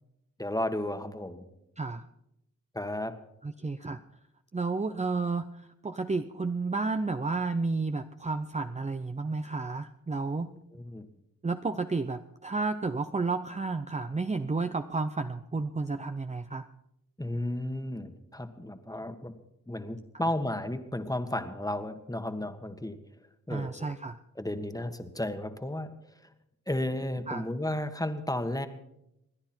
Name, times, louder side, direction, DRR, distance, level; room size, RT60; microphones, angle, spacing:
voice 1, 0.4-1.4 2.7-3.1 10.7-11.1 17.2-19.3 19.7-23.0 23.5-23.9 24.4-25.9 26.7-28.7, left 1 dB, 10° left, 7 dB, 1.6 m, -33 dB
voice 2, 3.4-4.0 4.5-10.5 11.4-16.7 23.5-24.2 27.3-27.5, right 3 dB, 20° right, 8 dB, 0.6 m, -31 dB
28.0 x 10.5 x 4.4 m, 0.83 s
cardioid pair, 65°, 34 cm